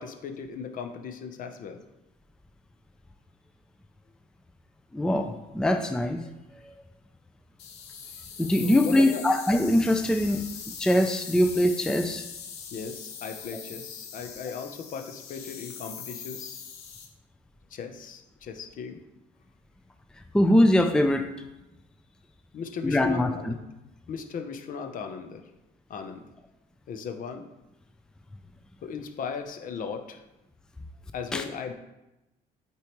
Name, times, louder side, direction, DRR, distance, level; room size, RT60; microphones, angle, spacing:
voice 1, 0.0-1.8 8.5-9.2 12.7-16.6 17.7-19.0 22.5-23.6 24.1-25.5 25.9-26.2 26.9-27.5 28.8-30.2 31.1-31.7, left 5 dB, 55° left, 6 dB, 0.8 m, -37 dB
voice 2, 4.9-6.2 6.6-6.7 8.4-12.3 20.3-21.3 22.8-23.5 31.3-31.4, left 1 dB, 5° left, 6 dB, 0.4 m, -23 dB
sound 1, 7.6-17.1, left 7 dB, 80° left, 1.0 m, -41 dB
8.3 x 4.5 x 3.1 m, 0.97 s
cardioid pair, 110°, 17 cm